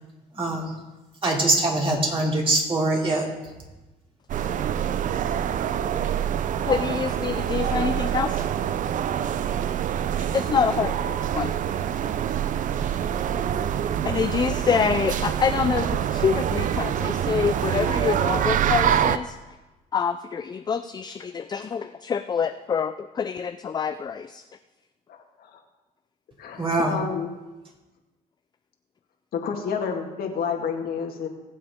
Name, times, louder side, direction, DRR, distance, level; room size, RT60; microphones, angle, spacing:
voice 1, 0.3-0.7 1.2-3.3 26.6-27.0, right 2 dB, 30° right, -2 dB, 3.3 m, -23 dB
sound 1, 4.3-19.2, right 9 dB, 50° right, 0.6 m, -25 dB
voice 2, 6.7-8.4 10.3-11.5 14.0-19.3 19.9-24.4, left 6 dB, 25° left, 9 dB, 0.4 m, -26 dB
voice 3, 25.1-25.6 26.4-27.3 29.3-31.3, left 6 dB, 65° left, 2 dB, 2.0 m, -30 dB
20.5 x 7.6 x 3.7 m, 1.1 s
cardioid pair, 110°, 17 cm